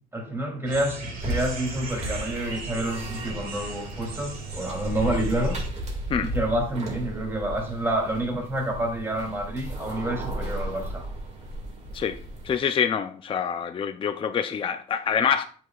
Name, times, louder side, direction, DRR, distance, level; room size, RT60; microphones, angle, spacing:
voice 1, 0.1-5.6 6.2-11.1, right 1 dB, 15° right, 2.7 m, -28 dB
sound 1, 0.7-5.7, right 3 dB, 60° right, 2.1 m, -38 dB
sound 2, 1.2-12.6, right 1 dB, 40° right, 2.0 m, -35 dB
voice 2, 12.4-15.4, left 7 dB, 30° left, 0.5 m, -26 dB
9.1 x 6.0 x 2.4 m
cardioid pair, 110°, 17 cm